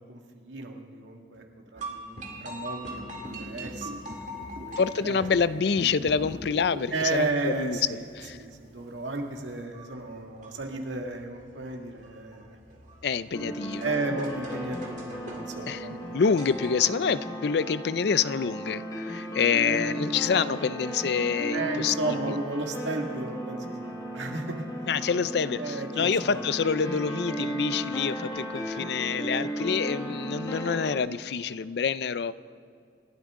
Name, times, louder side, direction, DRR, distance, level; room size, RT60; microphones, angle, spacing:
voice 1, 0.1-1.4 1.7-4.3 4.6-5.2 6.9-8.1 8.3-12.6 13.8-16.4 19.6-20.6 21.5-24.6 25.6-26.1, right 2 dB, 85° right, 2 dB, 1.9 m, -34 dB
sound 1, 1.7-16.8, right 1 dB, 40° right, 2.2 m, -43 dB
sound 2, 3.2-7.3 7.6-7.8 8.6-8.7, equal, 70° right, 1.9 m, -43 dB
voice 2, 4.8-8.4 13.0-13.8 15.7-15.9 16.1-22.4 24.9-32.3, left 6 dB, 65° left, 16 dB, 0.4 m, -27 dB
sound 3, 13.3-31.0, right 1 dB, 20° left, 1.7 m, -35 dB
28.0 x 12.5 x 3.7 m, 2.4 s
head